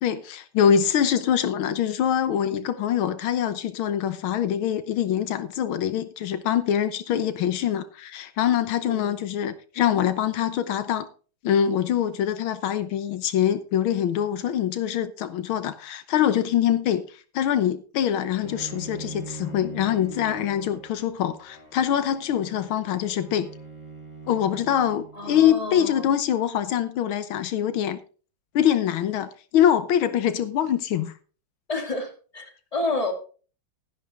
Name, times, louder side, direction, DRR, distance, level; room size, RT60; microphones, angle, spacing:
voice 1, 0.0-11.1 11.4-17.1 17.3-23.5 24.3-28.0 28.6-31.1, left 9 dB, 85° left, 1.8 m, -24 dB
Bowed string instrument, 18.4-25.5, right 3 dB, 10° right, 3.4 m, -42 dB
voice 2, 25.1-26.1 31.7-33.1, left 2 dB, 15° left, 2.5 m, -30 dB
12.5 x 10.5 x 3.6 m
omnidirectional pair, 2.2 m